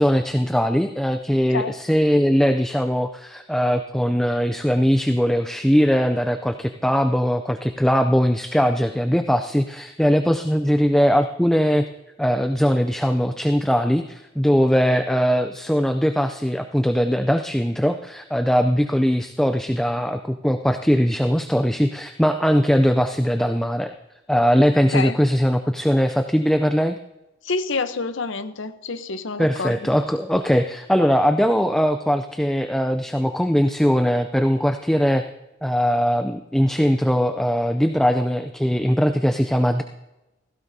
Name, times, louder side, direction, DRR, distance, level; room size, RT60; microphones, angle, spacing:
voice 1, 0.0-11.9 12.2-23.9 24.3-27.0 29.4-35.2 35.6-39.8, equal, ahead, 7 dB, 0.4 m, -20 dB
voice 2, 27.4-29.9, left 4 dB, 70° left, 9 dB, 0.9 m, -27 dB
17.5 x 15.5 x 2.7 m, 0.99 s
head